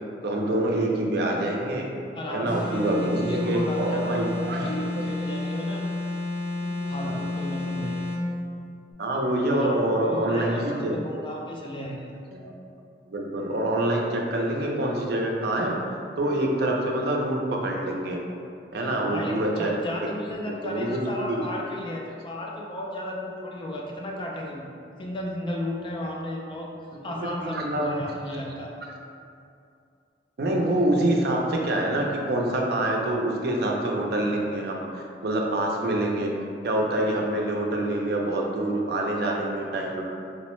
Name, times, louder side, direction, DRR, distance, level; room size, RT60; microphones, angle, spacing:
voice 1, 0.2-1.9 2.3-4.7 5.0-5.1 7.0-7.1 9.0-11.0 12.3-12.6 13.1-15.8 16.2-18.2 18.7-19.7 20.6-21.5 27.2-27.9 30.4-36.3 36.6-40.0, right 1 dB, 60° right, -1 dB, 0.5 m, -26 dB
voice 2, 2.1-5.8 6.6-8.0 9.5-9.8 10.0-12.1 19.1-24.7 25.0-26.7 27.0-28.7, left 1 dB, 30° left, -1 dB, 0.3 m, -34 dB
sound 1, 2.5-8.2, left 2 dB, 90° left, 0.8 m, -30 dB
4.0 x 2.1 x 3.0 m, 2.4 s
head